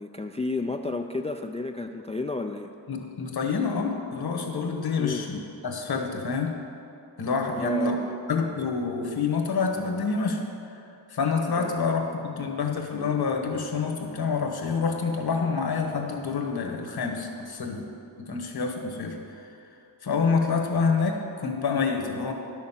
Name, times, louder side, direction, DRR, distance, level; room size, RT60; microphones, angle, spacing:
voice 1, 0.0-2.7 5.0-5.2 7.5-8.2 11.6-11.8, left 3 dB, 15° left, 5 dB, 0.3 m, -31 dB
voice 2, 2.9-6.5 7.2-8.0 8.3-10.4 10.7-10.8 11.1-17.9 18.2-19.5 20.0-22.3, left 5 dB, 60° left, 3 dB, 1.4 m, -27 dB
10.5 x 6.4 x 7.3 m, 2.7 s
wide cardioid pair, 95°, 43 cm